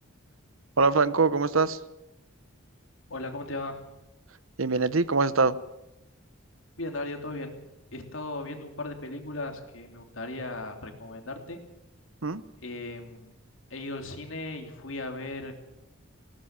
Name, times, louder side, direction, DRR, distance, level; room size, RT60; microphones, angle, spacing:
voice 1, 0.8-1.8 4.6-5.6 12.2-12.4, right 4 dB, 80° right, 15 dB, 1.0 m, -23 dB
voice 2, 3.1-3.8 6.8-7.6 7.9-11.6 12.6-13.3 13.7-15.5, left 2 dB, 70° left, 4 dB, 3.2 m, -37 dB
19.5 x 18.0 x 7.4 m, 0.92 s
head